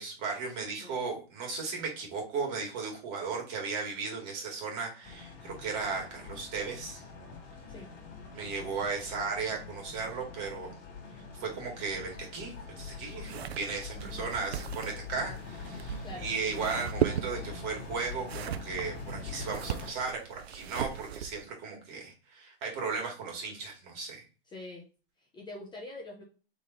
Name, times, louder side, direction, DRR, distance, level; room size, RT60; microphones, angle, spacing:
voice 1, 0.0-7.0 8.3-10.7 11.3-24.2, right 4 dB, 40° right, 0 dB, 2.0 m, -36 dB
sound 1, 5.0-19.9, left 5 dB, 35° left, 2.1 m, -44 dB
voice 2, 8.4-8.9 13.9-14.2 16.0-16.3 24.5-24.9 25.2-26.2, left 2 dB, 15° left, -2 dB, 0.8 m, -45 dB
sound 2, 13.2-21.5, right 9 dB, 85° right, 0.5 m, -37 dB
3.6 x 3.4 x 4.1 m, 0.34 s
hypercardioid pair, 120°, 30 cm